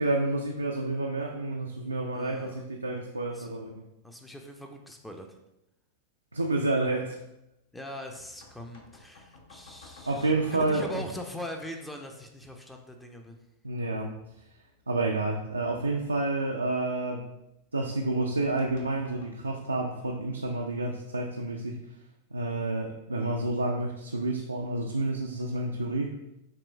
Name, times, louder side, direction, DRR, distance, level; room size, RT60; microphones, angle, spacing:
voice 1, 0.0-3.9 6.3-7.2 10.1-11.0 13.6-14.1 14.9-17.3 17.7-21.8 22.3-26.2, right 2 dB, 80° right, 0 dB, 0.3 m, -29 dB
voice 2, 2.1-2.6 3.3-3.5 4.0-5.4 7.7-13.4, left 1 dB, 5° left, 4 dB, 0.5 m, -41 dB
sound 1, 8.1-11.5 13.8-16.5 18.1-19.3, left 3 dB, 55° left, 0.7 m, -53 dB
6.7 x 3.0 x 2.3 m, 0.89 s
figure-of-eight pair, 90°, 0 cm